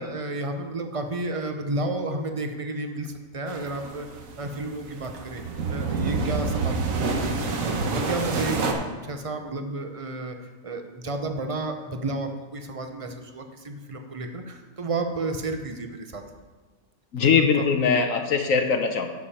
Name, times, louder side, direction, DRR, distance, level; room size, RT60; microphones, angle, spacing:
voice 1, 0.0-4.1 4.4-5.4 5.7-8.7 9.0-10.3 10.6-16.2 17.3-17.6, right 2 dB, 30° right, 5 dB, 0.7 m, -32 dB
sound 1, 3.5-8.7, right 4 dB, 75° right, 1.4 m, -28 dB
voice 2, 17.1-19.1, left 6 dB, 75° left, 5 dB, 1.2 m, -21 dB
10.5 x 7.0 x 4.3 m, 1.3 s
omnidirectional pair, 1.4 m